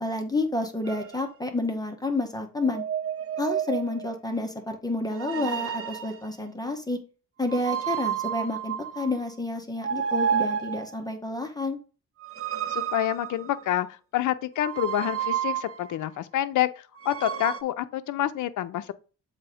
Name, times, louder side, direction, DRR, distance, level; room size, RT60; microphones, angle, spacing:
voice 1, 0.0-2.8 3.4-7.0 7.4-11.8, left 2 dB, 10° left, 0.9 m, -30 dB
sound 1, 0.9-1.2 2.6-4.2 5.1-6.3 7.5-9.2 9.8-11.0 12.2-13.8 14.6-16.0 17.0-17.6, right 8 dB, 45° right, 0.6 m, -31 dB
voice 2, 12.7-13.9 14.1-18.9, left 12 dB, 65° left, 0.6 m, -28 dB
7.4 x 2.8 x 4.9 m
cardioid pair, 115°, 33 cm